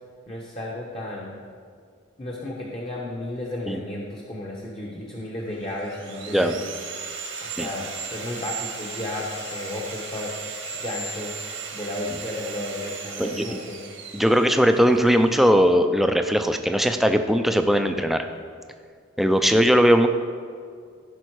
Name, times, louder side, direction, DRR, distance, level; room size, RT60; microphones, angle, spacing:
voice 1, 0.3-1.4 2.2-6.6 7.4-10.3 10.7-11.3 11.7-13.8, left 1 dB, 30° left, -3 dB, 1.0 m, -33 dB
Sawing, 5.5-15.3, right 4 dB, 80° right, 1.5 m, -36 dB
voice 2, 14.1-18.3 19.2-20.1, equal, ahead, 6 dB, 0.5 m, -19 dB
15.0 x 5.6 x 4.7 m, 2.1 s
head